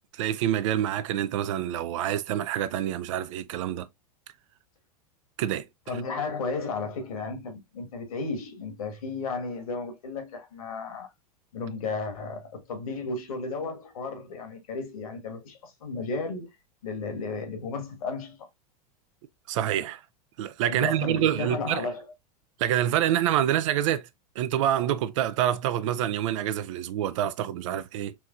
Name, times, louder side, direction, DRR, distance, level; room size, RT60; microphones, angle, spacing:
voice 1, 0.1-3.9 5.4-5.7 19.5-20.0 20.4-21.9 22.6-24.0 24.4-28.2, right 11 dB, 50° right, 0.5 m, -26 dB
voice 2, 5.9-11.1 11.5-16.5 16.8-18.5 20.6-22.0, left 4 dB, 65° left, 1.5 m, -34 dB
4.4 x 3.2 x 2.4 m
figure-of-eight pair, 90°, 20 cm